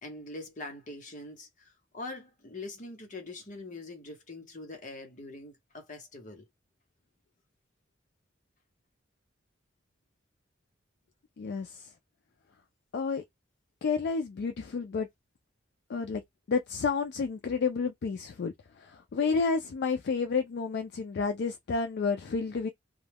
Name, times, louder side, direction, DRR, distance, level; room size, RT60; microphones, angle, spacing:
voice 1, 0.0-6.4, left 2 dB, 40° left, 0.9 m, -43 dB
voice 2, 11.4-11.9 12.9-13.2 13.8-15.1 15.9-16.2 16.5-18.5 18.8-22.7, left 5 dB, 60° left, 0.4 m, -30 dB
2.2 x 2.2 x 3.3 m
head